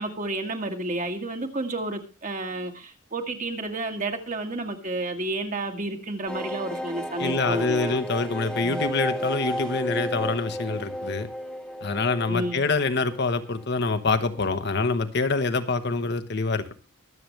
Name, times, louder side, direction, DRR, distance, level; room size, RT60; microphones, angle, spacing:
voice 1, 0.0-8.0 8.6-8.8 12.3-12.7, right 2 dB, 40° right, 5 dB, 1.8 m, -31 dB
sound 1, 6.3-13.7 14.0-14.1 14.4-14.5, equal, 5° left, 1.2 m, -33 dB
voice 2, 7.2-11.3 11.8-16.7, left 3 dB, 55° left, 9 dB, 1.1 m, -26 dB
23.5 x 7.8 x 3.3 m, 0.30 s
head